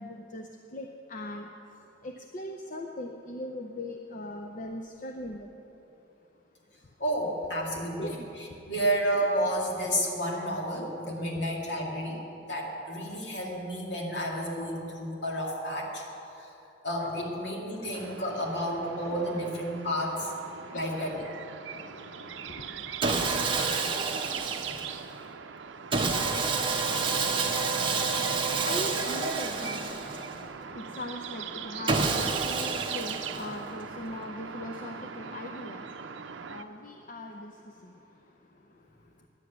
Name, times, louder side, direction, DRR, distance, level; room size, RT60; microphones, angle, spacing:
voice 1, 0.0-1.5 2.0-5.5 8.0-8.3 17.7-17.9 20.6-21.2 21.6-22.9 27.8-38.0, left 1 dB, 45° left, 3 dB, 0.6 m, -40 dB
voice 2, 7.0-8.0 8.7-12.2 12.5-16.0 16.4-16.5 16.8-20.3 20.7-21.2, equal, 60° left, -1 dB, 2.3 m, -31 dB
sound 1, 17.9-36.6, right 7 dB, 70° right, 0.6 m, -41 dB
Sawing, 23.0-25.1 25.9-30.4 31.9-33.7, right 4 dB, 25° right, 1.0 m, -29 dB
10.5 x 8.1 x 9.4 m, 3.0 s
head